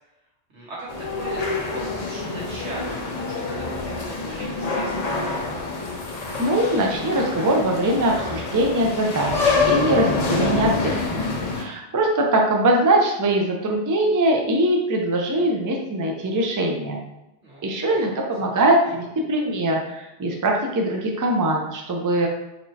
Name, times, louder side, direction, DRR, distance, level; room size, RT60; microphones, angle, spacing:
voice 1, 0.5-5.2 17.4-18.5, right 1 dB, 90° right, -6 dB, 1.7 m, -39 dB
sound 1, 0.9-11.6, left 3 dB, 45° left, 0.6 m, -26 dB
voice 2, 6.4-11.3 11.6-17.1 17.6-22.3, right 1 dB, 30° right, 0 dB, 0.3 m, -22 dB
4.3 x 3.1 x 2.8 m, 0.94 s
omnidirectional pair, 1.1 m